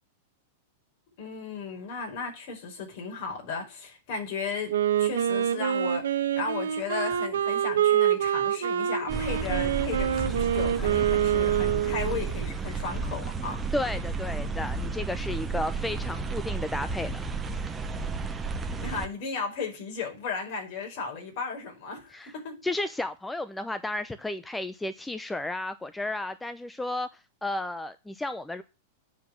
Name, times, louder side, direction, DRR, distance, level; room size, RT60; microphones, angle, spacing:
voice 1, 1.2-13.6 18.8-22.6, left 5 dB, 55° left, 4.9 m, -35 dB
Wind instrument woodwind instrument, 4.7-12.3, right 10 dB, 90° right, 1.4 m, -26 dB
sound 1, 9.1-19.1, right 4 dB, 15° right, 1.1 m, -32 dB
voice 2, 13.7-17.2 22.1-22.3 22.6-27.1 27.4-28.6, left 2 dB, 5° left, 0.6 m, -33 dB
9.2 x 5.0 x 7.4 m
hypercardioid pair, 135°, 0 cm